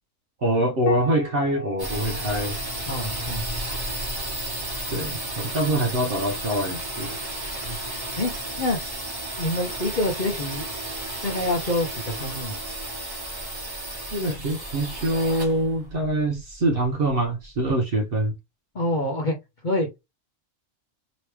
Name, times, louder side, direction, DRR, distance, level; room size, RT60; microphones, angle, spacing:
voice 1, 0.4-2.6 4.9-7.1 14.1-18.3, right 1 dB, 50° right, 0.8 m, -24 dB
Piano, 0.9-5.7 7.3-8.2, left 4 dB, 65° left, 1.2 m, -38 dB
sound 1, 1.8-17.4, right 1 dB, 20° right, 1.2 m, -33 dB
voice 2, 2.9-3.4 7.6-7.8 8.2-8.3 8.6-8.8 9.4-10.7 11.2-12.6 18.7-19.4 19.6-20.0, left 1 dB, 45° left, 0.7 m, -26 dB
3.1 x 2.9 x 3.2 m
omnidirectional pair, 1.4 m